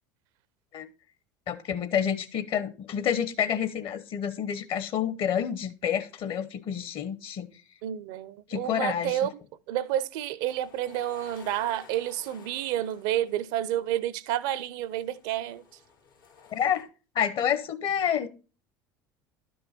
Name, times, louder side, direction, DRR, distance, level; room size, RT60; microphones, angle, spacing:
voice 1, 1.5-7.5 8.5-9.2 16.5-16.9 17.1-18.3, left 8 dB, 50° left, 1.0 m, -28 dB
voice 2, 7.8-9.3 9.7-15.6, right 12 dB, 65° right, 0.6 m, -30 dB
sound 1, 10.4-13.7 14.6-16.8, left 5 dB, 85° left, 3.0 m, -54 dB
11.5 x 5.4 x 4.3 m
hypercardioid pair, 75°, 11 cm